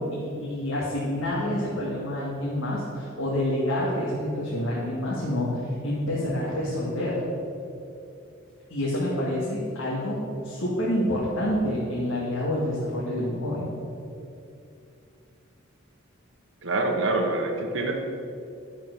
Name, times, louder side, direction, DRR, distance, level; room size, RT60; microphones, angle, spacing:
voice 1, 0.0-7.2 8.7-13.7, left 1 dB, 80° left, -6 dB, 2.2 m, -28 dB
voice 2, 16.6-18.0, right 2 dB, 65° right, 3 dB, 1.3 m, -25 dB
10.5 x 7.5 x 6.7 m, 2.7 s
head